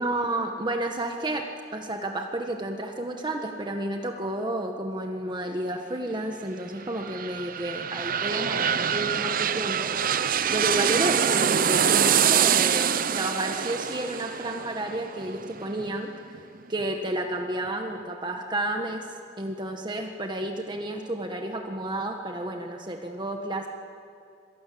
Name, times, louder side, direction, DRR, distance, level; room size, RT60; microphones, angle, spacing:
voice 1, 0.0-16.1 16.7-19.1 19.4-23.7, right 1 dB, 25° right, 3 dB, 1.5 m, -31 dB
sound 1, 6.8-16.4 16.8-16.9, right 8 dB, 50° right, 0.7 m, -25 dB
27.5 x 23.0 x 8.6 m, 2.4 s
head